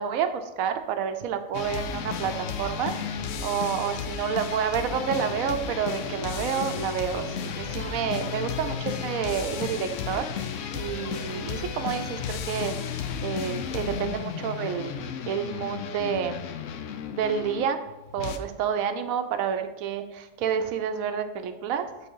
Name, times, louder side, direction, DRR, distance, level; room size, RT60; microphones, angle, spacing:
voice 1, 0.0-16.4 17.1-17.8 18.1-21.9, right 8 dB, 75° right, 9 dB, 1.0 m, -29 dB
sound 1, 1.5-18.4, left 7 dB, 70° left, 0.8 m, -33 dB
8.4 x 3.8 x 3.7 m, 1.0 s
omnidirectional pair, 1.5 m